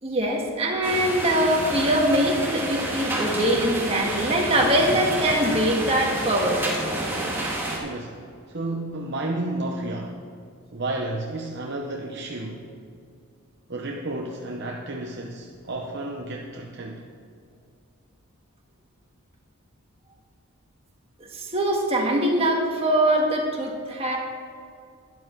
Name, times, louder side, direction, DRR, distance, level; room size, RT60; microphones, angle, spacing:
voice 1, 0.0-6.6 21.3-24.2, right 1 dB, 25° right, -1 dB, 1.8 m, -22 dB
sound 1, 0.8-7.8, right 1 dB, 10° right, 1.9 m, -29 dB
voice 2, 7.8-10.2 10.7-12.7 13.7-17.1, right 2 dB, 50° right, 1 dB, 0.8 m, -32 dB
12.5 x 10.5 x 4.5 m, 2.3 s
head